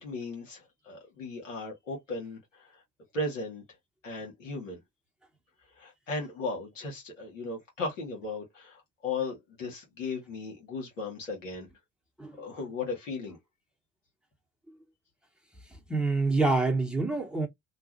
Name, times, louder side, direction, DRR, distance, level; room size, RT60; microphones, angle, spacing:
voice 1, 0.0-2.8 3.1-3.6 4.0-4.8 5.8-11.7 12.4-13.4, left 3 dB, 80° left, 1.5 m, -36 dB
voice 2, 15.9-17.5, right 3 dB, ahead, 1.1 m, -26 dB
3.0 x 2.3 x 2.9 m
figure-of-eight pair, 55°, 38 cm